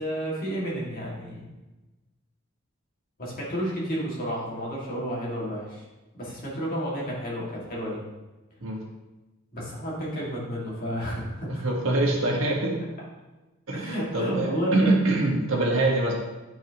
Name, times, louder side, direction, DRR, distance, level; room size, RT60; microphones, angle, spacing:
voice 1, 0.0-1.5 3.2-5.8 6.1-8.0 9.5-11.6 13.7-14.9, equal, 45° left, -5 dB, 2.0 m, -31 dB
voice 2, 11.6-12.8 13.7-16.1, right 2 dB, 80° right, -2 dB, 1.5 m, -24 dB
9.1 x 4.7 x 2.9 m, 1.1 s
head